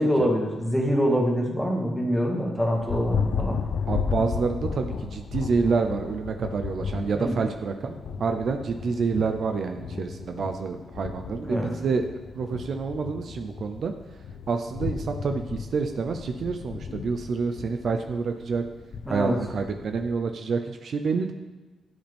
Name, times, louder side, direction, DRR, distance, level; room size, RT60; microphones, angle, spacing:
voice 1, 0.0-3.6 7.1-7.4 11.4-11.7 19.1-19.4, equal, ahead, -1 dB, 2.0 m, -25 dB
Thunder, 2.6-20.1, left 6 dB, 70° left, 0.7 m, -34 dB
voice 2, 3.9-12.0 12.4-13.9 14.5-18.6 19.1-21.3, right 5 dB, 60° right, 6 dB, 0.7 m, -28 dB
13.0 x 7.9 x 3.6 m, 1.3 s
cardioid pair, 120°, 0 cm